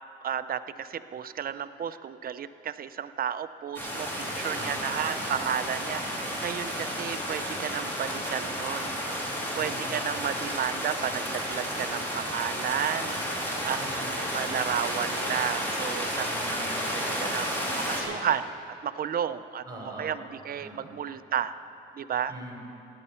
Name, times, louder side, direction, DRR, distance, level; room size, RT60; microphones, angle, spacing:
voice 1, 0.2-14.0 14.3-18.5 18.8-19.6 20.0-21.5 22.0-22.3, right 9 dB, 50° right, 13 dB, 0.5 m, -33 dB
sound 1, 3.7-18.0, equal, 10° left, 3.1 m, -32 dB
voice 2, 4.5-5.2 9.6-10.0 13.8-14.5 16.3-16.8 19.6-20.2 20.6-20.9 22.3-22.6, right 1 dB, 20° right, -1 dB, 3.4 m, -43 dB
16.0 x 10.0 x 5.7 m, 2.8 s
cardioid pair, 90°, 20 cm